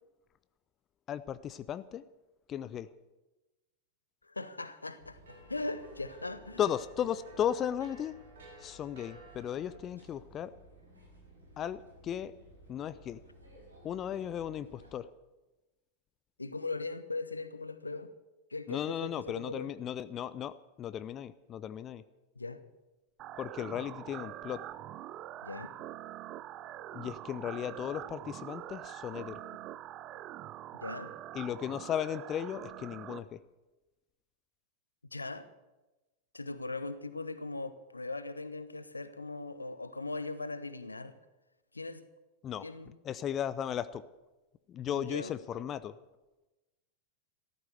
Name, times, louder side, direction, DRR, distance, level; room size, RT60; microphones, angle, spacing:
voice 1, 1.1-2.0 2.5-2.9 6.6-8.1 8.6-10.5 11.6-12.3 12.7-13.2 13.8-15.1 18.7-22.0 23.4-24.6 26.9-29.4 31.3-33.4 42.4-42.7 43.0-44.0 44.7-45.9, left 10 dB, 30° left, 0.5 m, -36 dB
voice 2, 4.2-6.6 16.4-18.1 18.5-19.7 22.4-22.6 25.4-25.7 30.8-31.1 35.1-35.5 36.3-41.1 41.7-42.1 42.6-43.0 44.9-45.3, left 3 dB, 80° left, 0.9 m, -39 dB
sound 1, 5.0-14.9, right 1 dB, 80° right, 5.5 m, -57 dB
sound 2, 5.2-9.9, right 1 dB, 65° right, 4.7 m, -56 dB
sound 3, 23.2-33.2, right 13 dB, 35° right, 0.7 m, -44 dB
14.5 x 13.5 x 6.7 m
figure-of-eight pair, 90°, 0 cm